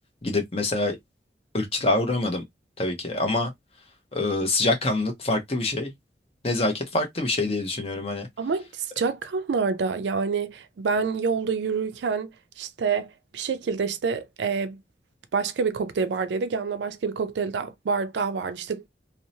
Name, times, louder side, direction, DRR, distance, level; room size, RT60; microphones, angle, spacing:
voice 1, 0.2-1.0 1.5-2.4 2.8-3.5 4.1-5.9 6.4-8.3, left 2 dB, 30° left, 0.7 m, -25 dB
voice 2, 8.4-12.3 12.6-14.8 15.3-18.9, right 5 dB, 75° right, 0.4 m, -27 dB
2.7 x 2.0 x 2.7 m
head